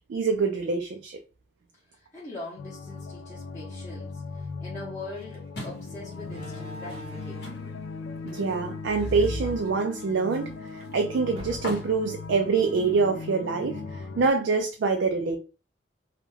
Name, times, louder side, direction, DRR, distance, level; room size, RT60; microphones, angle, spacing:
voice 1, 0.1-1.2 8.2-15.4, right 4 dB, 75° right, 0.3 m, -25 dB
voice 2, 1.9-7.7, left 2 dB, 15° left, 0.6 m, -42 dB
sound 1, 2.6-14.3, left 4 dB, 85° left, 0.3 m, -39 dB
Slam, 5.1-5.3 6.2-7.8 8.8-10.2 10.6-10.7 11.3-12.0, right 1 dB, 30° right, 0.6 m, -38 dB
sound 2, 5.5-13.3, left 1 dB, 65° left, 0.7 m, -45 dB
2.3 x 2.1 x 3.0 m
head